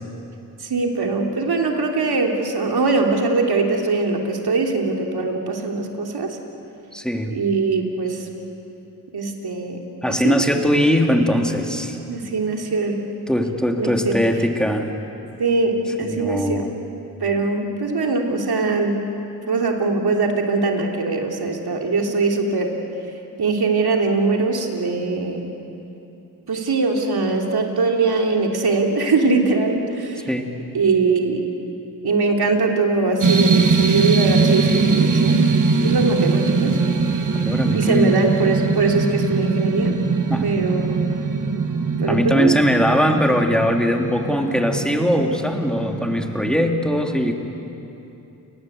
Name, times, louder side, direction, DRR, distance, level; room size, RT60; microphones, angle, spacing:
voice 1, 0.6-6.4 7.3-8.3 9.1-9.8 10.1-10.3 12.1-13.0 13.8-14.1 15.4-16.6 17.2-19.0 19.5-22.8 23.4-25.5 26.5-30.3 30.7-31.4 32.0-35.4 35.8-36.8 37.7-40.0 40.4-41.2 42.0-42.6, right 3 dB, 70° right, 1 dB, 3.4 m, -21 dB
voice 2, 6.9-7.4 10.0-12.0 13.3-14.9 16.0-16.7 30.3-30.5 37.4-38.2 40.3-40.6 42.1-47.3, equal, ahead, 2 dB, 3.4 m, -20 dB
sound 1, 33.2-46.6, right 4 dB, 50° right, 1.8 m, -21 dB
29.5 x 19.5 x 8.1 m, 2.9 s
supercardioid pair, 40°, 40 cm